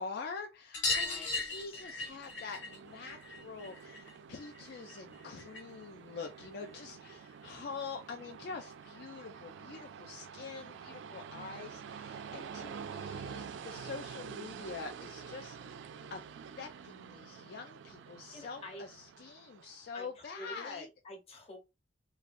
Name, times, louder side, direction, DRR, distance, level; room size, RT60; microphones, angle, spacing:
voice 1, 0.0-15.6 16.1-16.2 16.6-20.9, left 5 dB, 60° left, 0.4 m, -45 dB
sound 1, 0.7-5.8 6.1-7.3 8.6-8.7 8.9-9.0 9.4-9.5 10.7-10.8 11.1-11.2 11.5-11.6 12.9-13.0 13.8-13.9, left 3 dB, 80° left, 1.2 m, -39 dB
voice 2, 1.0-1.8 15.6-16.1 18.3-18.8 19.9-21.6, left 1 dB, 35° left, 1.0 m, -49 dB
Train, 1.4-20.0, right 7 dB, 70° right, 0.3 m, -48 dB
3.1 x 2.3 x 2.5 m
head